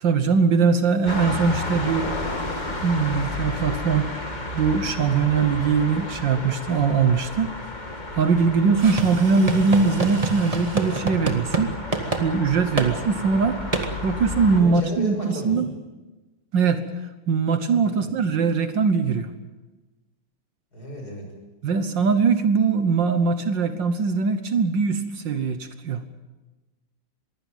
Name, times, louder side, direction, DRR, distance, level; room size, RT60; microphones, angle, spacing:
voice 1, 0.0-2.2 2.8-4.2 4.6-7.6 8.1-11.7 12.2-13.6 14.0-15.7 16.5-16.8 17.3-19.3 21.6-26.0, right 5 dB, 65° right, 10 dB, 1.8 m, -21 dB
sound 1, 1.1-14.6, left 2 dB, 20° left, 2.4 m, -32 dB
sound 2, 8.8-11.7 11.9-12.2 12.8-12.9 13.7-13.9, right 3 dB, 20° right, 1.6 m, -27 dB
voice 2, 14.6-15.6 17.8-18.1 20.7-21.2, left 1 dB, 45° left, 2 dB, 6.5 m, -34 dB
22.5 x 16.0 x 9.2 m, 1.2 s
omnidirectional pair, 2.3 m